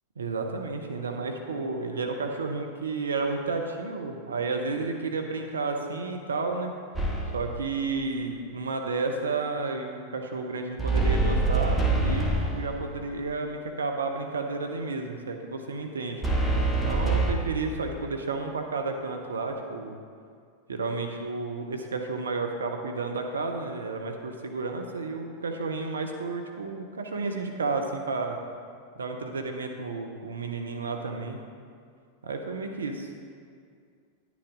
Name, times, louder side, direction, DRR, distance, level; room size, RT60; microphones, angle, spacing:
voice 1, 0.2-6.7 7.3-16.2 16.8-20.0 20.7-28.4 29.0-31.4 32.2-33.1, right 3 dB, 70° right, 4 dB, 0.7 m, -32 dB
sound 1, 7.0-7.6 10.8-12.8 16.2-17.3, right 3 dB, ahead, 1.4 m, -25 dB
11.0 x 9.2 x 3.8 m, 2.2 s
figure-of-eight pair, 90°, 0 cm